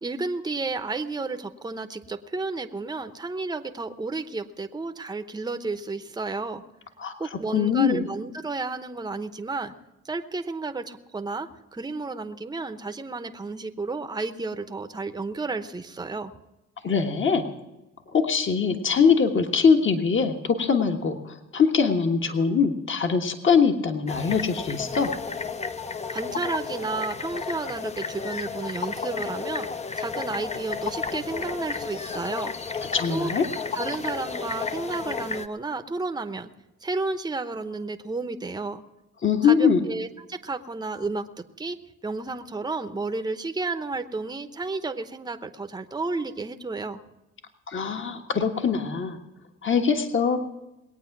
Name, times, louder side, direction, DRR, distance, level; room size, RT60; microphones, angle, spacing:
voice 1, 0.0-6.6 7.2-9.7 10.0-16.3 26.1-29.7 30.0-32.6 33.1-33.3 33.7-36.5 36.8-38.8 39.4-41.8 42.0-47.0, right 3 dB, 15° right, 8 dB, 0.9 m, -32 dB
voice 2, 7.5-8.1 16.8-17.4 18.1-25.1 32.9-33.5 39.2-39.8 47.7-49.2 49.6-50.4, left 6 dB, 40° left, 5 dB, 1.4 m, -22 dB
sound 1, 24.1-35.5, left 5 dB, 20° left, 0.7 m, -32 dB
21.0 x 8.9 x 6.0 m, 1.0 s
cardioid pair, 90°, 30 cm